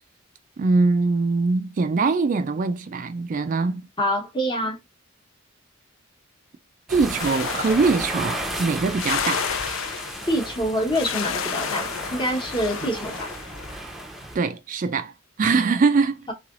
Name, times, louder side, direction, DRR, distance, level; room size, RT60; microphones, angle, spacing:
voice 1, 0.6-3.9 6.9-9.5 12.8-12.9 14.3-16.3, right 4 dB, 40° right, 0.3 m, -22 dB
voice 2, 4.0-4.8 10.3-13.3, equal, 25° left, 1.1 m, -26 dB
sound 1, 6.9-14.4, right 1 dB, ahead, 0.7 m, -34 dB
sound 2, 7.2-13.8, left 7 dB, 70° left, 0.5 m, -32 dB
3.8 x 3.2 x 2.4 m
head